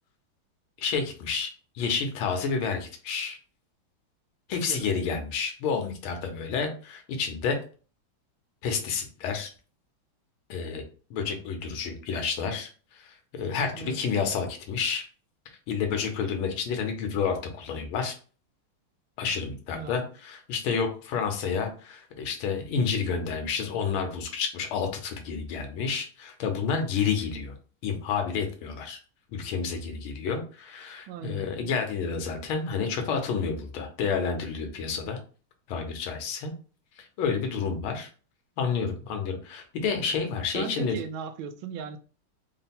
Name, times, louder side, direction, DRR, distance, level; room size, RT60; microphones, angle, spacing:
voice 1, 0.8-3.4 4.5-7.6 8.6-9.5 10.5-10.8 11.1-15.0 15.7-18.1 19.2-27.5 27.8-29.0 29.3-35.2 35.7-36.5 37.0-38.1 38.6-40.9, left 5 dB, 80° left, 1.6 m, -30 dB
voice 2, 4.5-4.9 13.7-14.0 19.7-20.1 31.1-31.5 40.5-42.0, right 6 dB, 80° right, 1.3 m, -37 dB
3.8 x 2.2 x 4.1 m
omnidirectional pair, 2.3 m